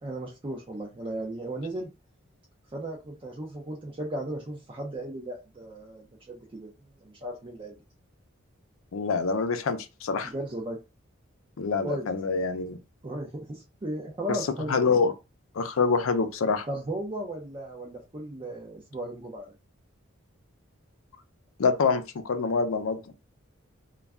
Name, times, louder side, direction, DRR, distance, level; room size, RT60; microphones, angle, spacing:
voice 1, 0.0-1.9 2.7-6.7 7.0-7.8 10.2-10.8 11.8-12.0 13.0-14.7 16.7-19.5, right 1 dB, 25° right, 0.5 m, -36 dB
voice 2, 8.9-10.3 11.6-12.8 14.7-15.1 15.5-16.7 21.6-23.0, left 4 dB, 80° left, 0.5 m, -26 dB
2.3 x 2.2 x 3.5 m
head